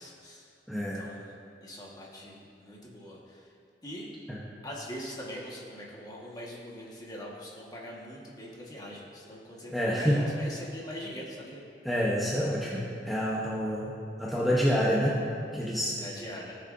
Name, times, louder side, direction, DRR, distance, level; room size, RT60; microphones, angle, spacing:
voice 1, 0.0-0.5 0.8-1.4 1.6-3.5 3.8-4.1 4.6-11.6 16.0-16.6, equal, 20° left, -4 dB, 1.4 m, -42 dB
voice 2, 0.7-1.0 4.3-4.4 9.7-10.2 11.8-13.9 14.2-15.2 15.5-16.0, equal, ahead, -6 dB, 0.8 m, -27 dB
17.5 x 6.6 x 2.6 m, 2.4 s
head